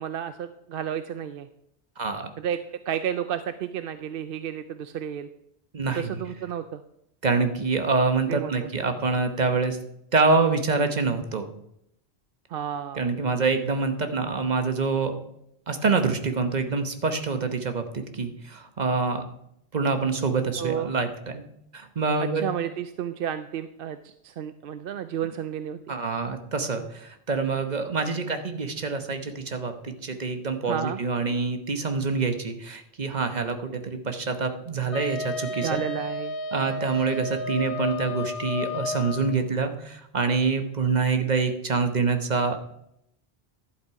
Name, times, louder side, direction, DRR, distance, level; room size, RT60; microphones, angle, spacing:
voice 1, 0.0-1.5 2.4-2.6 2.9-5.3 5.9-6.8 8.3-8.7 12.5-13.1 20.6-20.9 22.4-25.9 30.7-31.0 35.6-36.4, right 9 dB, 65° right, 11 dB, 0.7 m, -31 dB
voice 2, 2.0-2.3 5.7-6.2 7.2-9.8 10.1-11.5 12.9-15.2 15.7-19.2 19.7-21.4 21.7-22.4 25.9-35.8 36.5-42.6, right 4 dB, 45° right, 7 dB, 1.1 m, -26 dB
Wind instrument woodwind instrument, 34.9-39.3, left 3 dB, 90° left, 1.3 m, -32 dB
11.5 x 8.0 x 4.7 m, 0.77 s
omnidirectional pair, 1.1 m